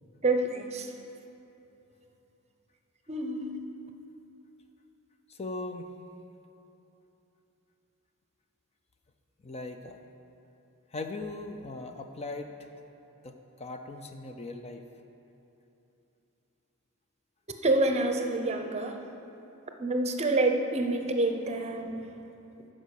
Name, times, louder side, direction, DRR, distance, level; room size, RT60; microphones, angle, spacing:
voice 1, 0.2-0.9 3.1-3.5 17.5-19.0 19.8-22.1, right 2 dB, 30° right, 5 dB, 0.7 m, -27 dB
voice 2, 5.3-5.9 9.4-10.0 10.9-12.5 13.2-14.8, left 2 dB, 30° left, 6 dB, 0.5 m, -39 dB
13.5 x 5.1 x 6.5 m, 2.9 s
head